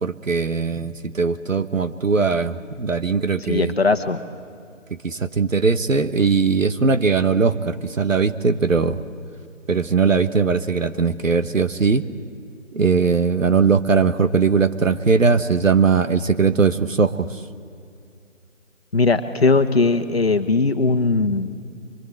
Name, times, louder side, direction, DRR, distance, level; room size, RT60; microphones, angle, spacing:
voice 1, 0.0-3.7 5.0-9.0 9.7-12.0 12.7-17.3, right 5 dB, 75° right, 10 dB, 1.3 m, -19 dB
voice 2, 3.4-4.2 18.9-21.6, left 3 dB, 50° left, 6 dB, 1.3 m, -19 dB
24.0 x 22.5 x 7.9 m, 2.4 s
figure-of-eight pair, 175°, 39 cm